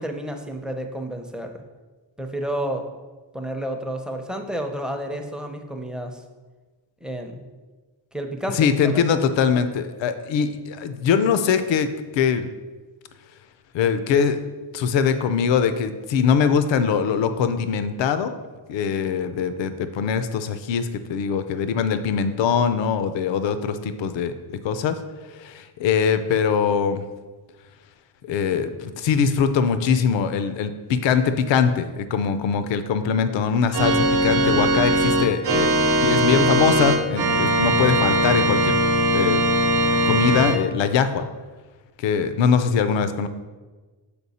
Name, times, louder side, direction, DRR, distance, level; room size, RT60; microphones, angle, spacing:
voice 1, 0.0-1.6 2.2-2.8 3.3-6.2 7.0-7.4 8.1-9.3, right 1 dB, ahead, 3 dB, 0.5 m, -30 dB
voice 2, 8.5-11.9 12.1-12.5 13.7-14.4 14.7-18.3 18.7-25.0 25.4-27.0 28.2-35.7 36.0-38.7 39.1-39.4 39.9-41.2 42.0-43.3, left 6 dB, 70° left, 10 dB, 0.6 m, -22 dB
Organ, 33.7-40.6, right 1 dB, 55° right, 0.9 m, -20 dB
6.9 x 4.4 x 4.1 m, 1.3 s
cardioid pair, 110°, 46 cm